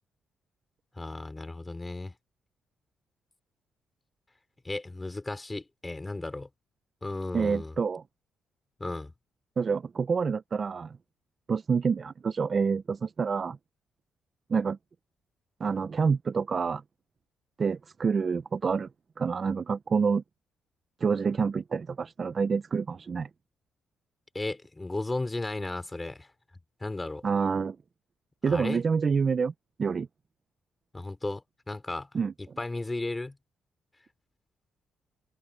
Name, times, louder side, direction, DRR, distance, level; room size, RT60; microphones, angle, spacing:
voice 1, 1.0-2.1 4.6-6.5 7.0-7.7 8.8-9.1 24.3-26.3 26.8-27.2 28.5-28.8 30.9-32.1 32.4-33.4, left 2 dB, 15° left, 3.2 m, -34 dB
voice 2, 7.3-8.0 9.6-11.0 11.5-13.6 14.5-14.8 15.6-16.8 17.6-18.9 19.2-20.2 21.0-23.3 27.2-27.8 28.4-29.5 29.8-30.1 32.1-32.3, right 5 dB, 40° right, 0.7 m, -27 dB
cardioid pair, 90°, 0 cm